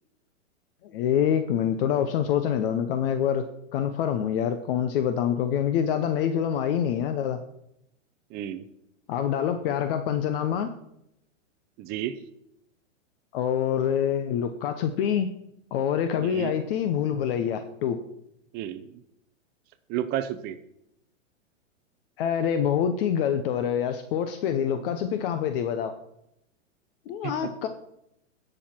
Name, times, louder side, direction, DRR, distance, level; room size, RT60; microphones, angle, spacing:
voice 1, 0.8-3.4 3.7-7.4 9.1-10.7 13.3-15.3 15.7-18.0 22.2-25.9 27.1-27.7, left 9 dB, 45° left, 9 dB, 0.9 m, -26 dB
voice 2, 8.3-8.7 11.8-12.2 16.2-16.5 18.5-19.0 19.9-20.6 27.2-27.5, right 11 dB, 25° right, 11 dB, 0.6 m, -32 dB
15.5 x 6.6 x 4.4 m, 0.79 s
hypercardioid pair, 130°, 38 cm